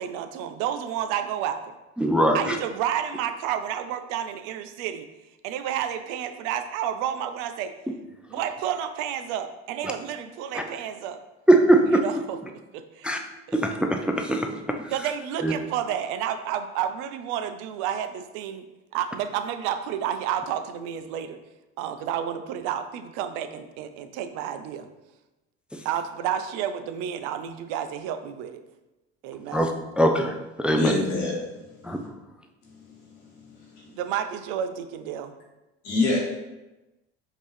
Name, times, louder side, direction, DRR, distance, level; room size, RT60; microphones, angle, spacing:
voice 1, 0.0-1.7 2.3-5.1 5.4-7.7 8.3-11.2 12.0-12.4 12.7-13.1 13.5-13.6 14.9-18.6 18.9-21.4 21.8-24.9 25.8-28.6 29.2-29.7 33.9-35.3, right 9 dB, 65° right, 9 dB, 0.5 m, -30 dB
voice 2, 2.0-2.6 10.5-10.6 11.5-12.0 13.0-13.2 13.5-14.8 15.4-15.5 29.5-29.7 30.0-30.9 31.8-32.0, right 1 dB, 5° right, 4 dB, 0.3 m, -21 dB
voice 3, 30.7-31.6 33.4-33.9 35.8-36.2, left 2 dB, 90° left, -4 dB, 1.4 m, -26 dB
5.1 x 2.8 x 3.2 m, 1.0 s
hypercardioid pair, 70°, 35 cm